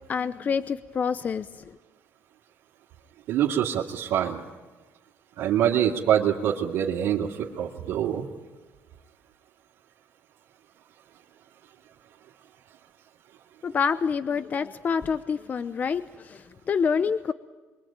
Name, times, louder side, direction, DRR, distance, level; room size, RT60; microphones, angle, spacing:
voice 1, 0.1-1.5 13.6-17.3, left 6 dB, 35° left, 12 dB, 0.8 m, -27 dB
voice 2, 3.3-4.4 5.4-8.2, right 10 dB, 85° right, -5 dB, 2.7 m, -25 dB
26.5 x 23.5 x 9.0 m, 1.3 s
cardioid pair, 120°, 5 cm